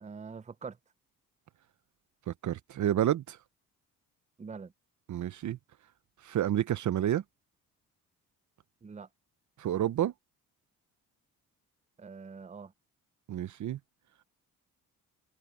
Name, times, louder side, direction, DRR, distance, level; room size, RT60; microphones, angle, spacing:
voice 1, 0.0-0.8 4.4-4.7 8.8-9.1 12.0-12.7, right 5 dB, 20° right, 0.7 m, -44 dB
voice 2, 2.3-3.4 5.1-5.6 6.2-7.2 9.6-10.1 13.3-13.8, right 11 dB, 55° right, 0.8 m, -29 dB
supercardioid pair, 75°, 35 cm